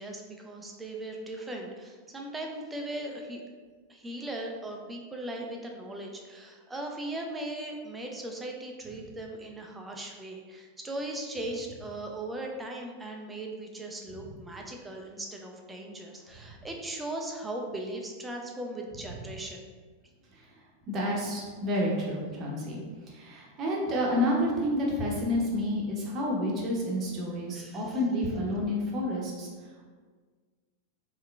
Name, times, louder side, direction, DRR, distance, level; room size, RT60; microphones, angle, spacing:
voice 1, 0.0-3.4 3.9-19.6 27.5-28.0, right 1 dB, 10° right, 1 dB, 0.4 m, -38 dB
voice 2, 20.9-29.5, left 1 dB, 30° right, -3 dB, 0.8 m, -29 dB
3.6 x 3.1 x 2.3 m, 1.5 s
figure-of-eight pair, 90°, 0 cm